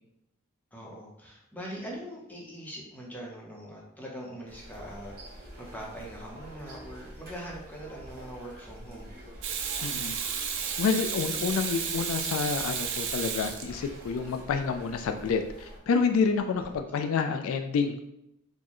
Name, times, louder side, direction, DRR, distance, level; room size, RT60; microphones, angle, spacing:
voice 1, 0.7-9.1 16.5-16.7, equal, 10° left, -3 dB, 0.7 m, -42 dB
sound 1, 4.5-15.8, right 1 dB, 45° right, 1.0 m, -47 dB
Water tap faucet / Sink (filling or washing), 9.4-14.2 16.6-16.7, right 7 dB, 65° right, 0.4 m, -33 dB
voice 2, 9.8-10.1 10.8-18.0, left 5 dB, 80° left, 7 dB, 0.3 m, -28 dB
4.4 x 2.1 x 3.0 m, 0.83 s
head